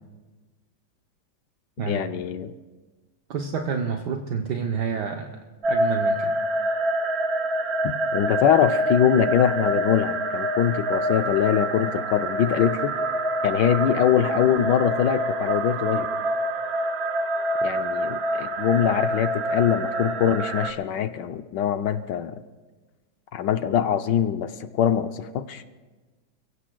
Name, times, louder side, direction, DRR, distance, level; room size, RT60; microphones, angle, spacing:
voice 1, 1.9-2.5 7.8-13.0 13.4-16.1 17.6-22.4 23.3-25.6, left 9 dB, 70° left, 9 dB, 1.2 m, -23 dB
voice 2, 3.3-5.3 5.7-6.3, right 6 dB, 65° right, 3 dB, 1.3 m, -28 dB
sound 1, 5.6-20.7, right 1 dB, 80° right, 0.5 m, -26 dB
29.5 x 16.0 x 2.3 m, 1.3 s
omnidirectional pair, 2.2 m